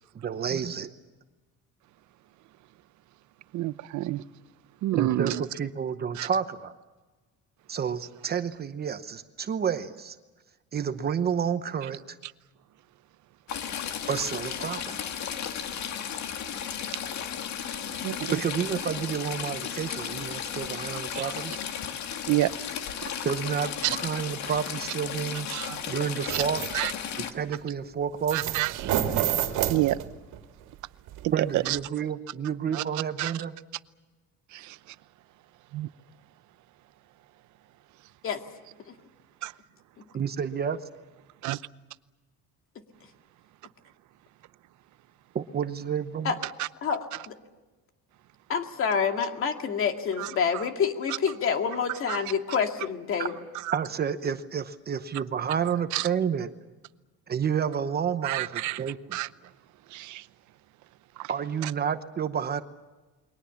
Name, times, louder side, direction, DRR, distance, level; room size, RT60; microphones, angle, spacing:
voice 1, 0.1-0.9 4.9-6.7 7.7-10.2 10.7-12.2 14.1-15.0 18.3-21.5 23.0-26.6 27.2-28.6 31.3-33.5 40.1-40.8 45.3-46.3 53.2-53.3 53.7-56.5 57.3-59.2 61.3-62.6, right 7 dB, 30° right, 0.9 m, -30 dB
voice 2, 3.5-4.2 4.8-5.4 6.2-6.3 18.0-18.4 21.1-21.3 22.3-22.5 23.0-23.1 23.8-24.0 25.5-25.8 26.3-26.4 26.7-26.9 28.3-28.7 29.7-30.0 31.4-31.8 32.7-32.8 33.2-33.3 34.5-34.8 35.7-35.9 39.4-39.5 41.4-41.6 46.6-46.7 50.2-50.6 52.1-52.2 55.9-56.1 58.2-58.8 59.1-59.3 59.9-60.2 61.2-61.3, right 16 dB, 70° right, 0.8 m, -28 dB
Stream / Trickle dribble, 13.5-27.3, left 8 dB, 65° left, 2.0 m, -34 dB
sound 1, 26.3-26.7 28.3-30.4 31.1-31.2 31.7-31.8, right 11 dB, 85° right, 2.3 m, -28 dB
voice 3, 46.8-47.4 48.5-53.3, left 6 dB, 45° left, 2.2 m, -27 dB
29.0 x 22.5 x 7.2 m
cardioid pair, 160°, 31 cm